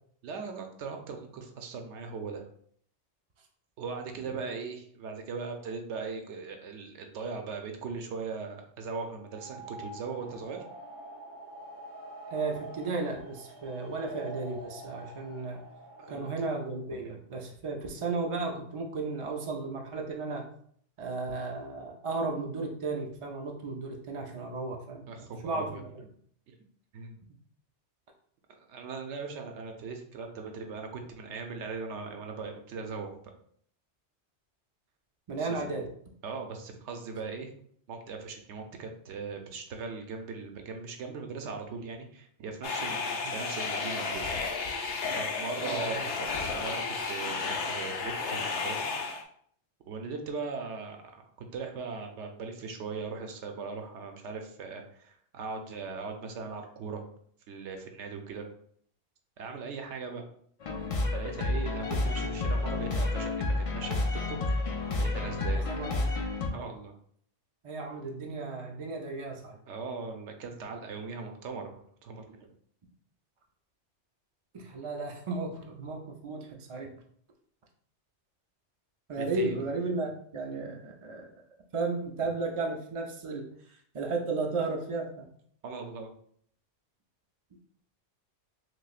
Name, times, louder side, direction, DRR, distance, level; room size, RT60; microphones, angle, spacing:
voice 1, 0.2-2.4 3.8-10.6 16.0-16.2 25.1-25.8 26.5-26.6 26.9-27.2 28.6-33.3 35.4-35.7 36.2-37.5 37.9-44.3 45.1-48.9 49.9-51.2 51.5-57.1 57.5-58.5 59.4-60.2 61.1-64.6 65.0-65.7 66.5-66.9 69.7-72.5 79.2-79.7 85.6-86.1, right 4 dB, 85° right, 4 dB, 0.9 m, -39 dB
sound 1, 9.2-16.8, right 2 dB, 20° right, 0.7 m, -46 dB
voice 2, 12.3-15.6 16.1-20.5 21.0-25.1 25.4-25.8 35.3-35.9 45.6-46.0 65.5-66.2 67.6-69.6 74.5-76.9 79.1-81.3 81.7-85.3, right 3 dB, 55° right, 1 dB, 0.3 m, -34 dB
sound 2, 42.6-49.2, left 4 dB, 80° left, 0.9 m, -33 dB
sound 3, 60.6-66.5, left 2 dB, 55° left, 0.3 m, -30 dB
6.1 x 2.0 x 2.4 m, 0.62 s
omnidirectional pair, 1.2 m